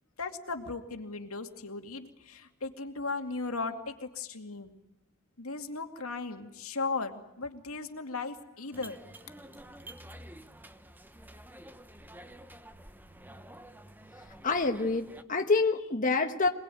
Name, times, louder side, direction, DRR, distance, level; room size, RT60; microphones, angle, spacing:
voice 1, 0.2-4.8 5.4-9.0, left 3 dB, 90° left, 5 dB, 2.4 m, -37 dB
sound 1, 8.7-15.2, right 1 dB, 10° right, 1.0 m, -49 dB
voice 2, 14.4-16.5, left 3 dB, 40° left, 5 dB, 1.3 m, -27 dB
27.0 x 20.0 x 9.2 m, 0.87 s
head